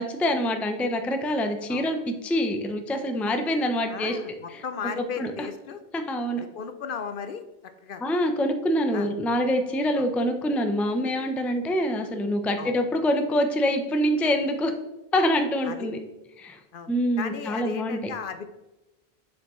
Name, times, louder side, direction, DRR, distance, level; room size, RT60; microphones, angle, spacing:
voice 1, 0.0-4.2 4.5-4.6 5.0-5.5 5.9-6.5 8.0-14.7 15.1-16.0 16.4-16.6 16.9-18.0, equal, ahead, 6 dB, 0.4 m, -25 dB
voice 2, 3.9-5.8 6.4-7.4 7.8-8.0 8.9-9.1 10.0-10.1 12.6-12.8 15.6-15.9 16.7-18.4, left 6 dB, 60° left, 9 dB, 0.7 m, -35 dB
7.3 x 6.2 x 3.1 m, 1.0 s
omnidirectional pair, 1.1 m